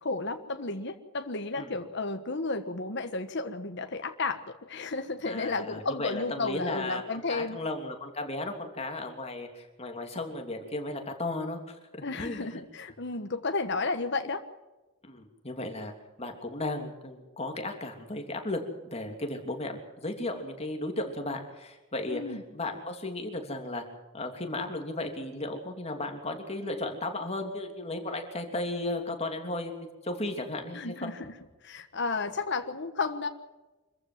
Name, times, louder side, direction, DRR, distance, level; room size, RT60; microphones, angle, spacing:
voice 1, 0.0-7.6 12.0-14.4 22.1-22.4 30.7-31.3 31.6-33.3, left 3 dB, 60° left, 6 dB, 1.5 m, -33 dB
voice 2, 5.2-7.0 7.3-11.8 12.2-12.6 15.0-15.9 16.2-23.8 24.1-29.7 30.0-31.1, left 2 dB, 30° left, 4 dB, 3.2 m, -35 dB
25.5 x 14.5 x 7.6 m, 1.1 s
head